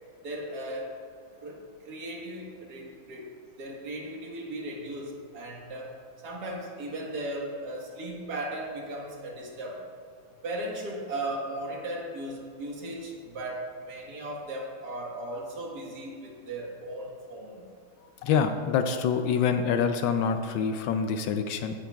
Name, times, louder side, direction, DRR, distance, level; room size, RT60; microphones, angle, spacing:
voice 1, 0.2-1.0 1.4-5.9 6.2-9.8 10.4-17.6, right 1 dB, 50° right, -1 dB, 1.9 m, -37 dB
voice 2, 18.2-21.7, left 6 dB, 75° left, 8 dB, 1.2 m, -26 dB
16.0 x 8.9 x 2.4 m, 2.1 s
omnidirectional pair, 2.3 m